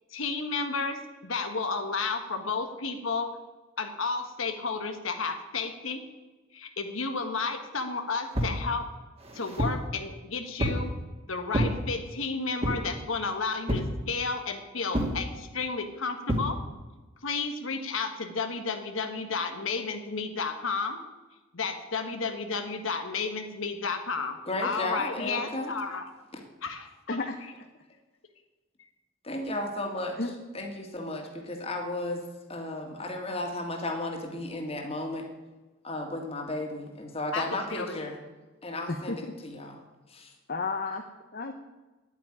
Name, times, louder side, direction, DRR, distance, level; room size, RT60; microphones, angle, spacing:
voice 1, 0.1-3.3 3.8-6.0 6.5-8.9 9.3-10.9 11.3-16.6 17.2-21.0 21.5-26.1 26.6-27.2 37.3-38.0, left 4 dB, 85° left, 6 dB, 1.4 m, -32 dB
sound 1, 8.3-8.6 9.2-9.9 10.6-10.9 11.5-11.8 12.6-12.9 13.7-14.0 14.9-15.2 16.3-16.5, equal, 30° right, 2.2 m, -28 dB
voice 2, 24.5-25.8 26.3-26.4 29.2-30.2 30.5-32.2 32.5-35.3 35.8-38.2 38.6-39.8 40.1-40.3 40.9-41.0, left 1 dB, 30° left, 3 dB, 2.1 m, -34 dB
voice 3, 27.1-27.4 30.2-30.3 38.9-39.2 40.5-41.0 41.3-41.5, left 3 dB, 45° left, 5 dB, 0.9 m, -31 dB
9.9 x 8.9 x 9.9 m, 1.2 s
head